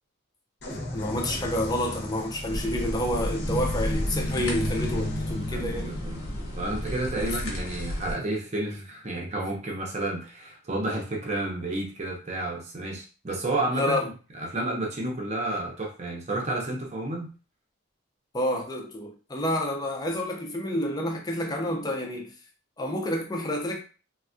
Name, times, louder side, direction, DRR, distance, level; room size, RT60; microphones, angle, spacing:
sound 1, 0.6-8.2, left 1 dB, 50° left, 0.7 m, -35 dB
voice 1, 0.9-5.9 7.2-7.4 13.7-14.1 18.3-22.3 22.8-23.8, left 1 dB, 20° left, 2 dB, 0.4 m, -29 dB
sound 2, 2.5-8.1, left 1 dB, 80° left, 0.9 m, -33 dB
voice 2, 5.5-6.3 6.6-14.0 14.3-17.3, right 2 dB, 30° right, -1 dB, 0.6 m, -31 dB
3.3 x 2.3 x 2.5 m, 0.34 s
head